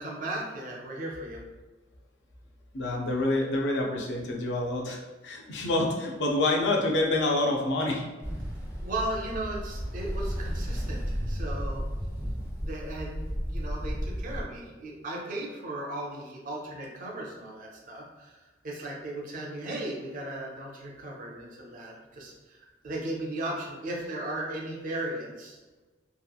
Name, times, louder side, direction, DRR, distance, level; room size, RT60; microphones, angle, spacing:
voice 1, 0.0-1.4 8.8-11.8 12.6-25.6, right 1 dB, 45° right, -2 dB, 0.5 m, -36 dB
voice 2, 2.7-8.0, left 2 dB, 65° left, 0 dB, 0.5 m, -27 dB
Ocean, 8.2-14.4, equal, 15° left, 0.5 m, -33 dB
2.8 x 2.3 x 2.3 m, 1.2 s
head